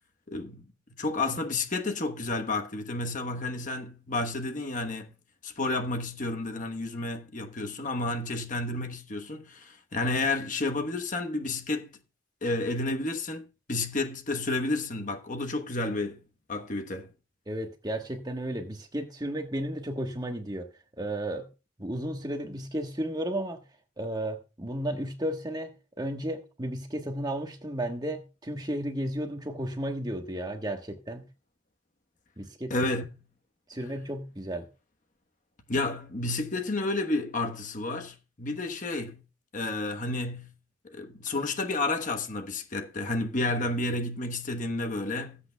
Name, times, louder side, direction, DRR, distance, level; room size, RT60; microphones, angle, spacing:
voice 1, 0.3-0.6 1.0-5.1 5.4-11.9 12.4-16.2 16.5-17.1 32.7-33.0 35.7-39.2 39.5-40.5 40.8-45.4, left 2 dB, 40° left, 1.1 m, -31 dB
voice 2, 17.5-21.5 21.8-23.6 24.0-31.2 32.4-32.7 33.7-34.7, right 1 dB, 20° right, 1.2 m, -33 dB
19.5 x 8.4 x 2.2 m
head